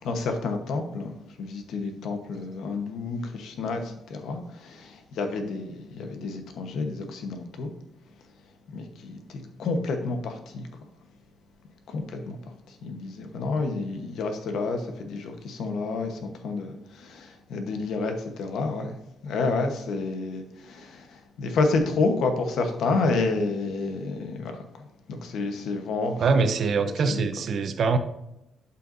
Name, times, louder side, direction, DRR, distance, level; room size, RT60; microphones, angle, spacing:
voice 1, 0.0-7.7 8.7-10.7 11.9-12.4 12.7-19.0 19.2-26.2 27.0-27.2, left 3 dB, 70° left, 5 dB, 1.1 m, -29 dB
voice 2, 26.2-28.0, right 4 dB, 50° right, 9 dB, 0.7 m, -23 dB
11.5 x 5.7 x 2.7 m, 0.87 s
cardioid pair, 140°, 0 cm